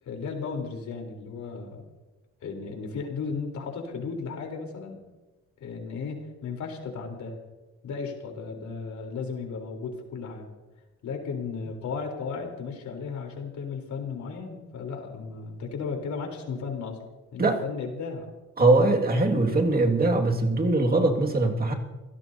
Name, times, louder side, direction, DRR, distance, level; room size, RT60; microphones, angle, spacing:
voice 1, 0.0-1.8 2.4-5.0 5.6-7.4 7.8-10.5 11.0-17.0 17.3-18.3, left 5 dB, 70° left, 2 dB, 3.8 m, -35 dB
voice 2, 18.6-21.7, right 2 dB, 30° right, 2 dB, 2.1 m, -22 dB
29.5 x 17.0 x 2.8 m, 1.1 s
cardioid pair, 90°, 30 cm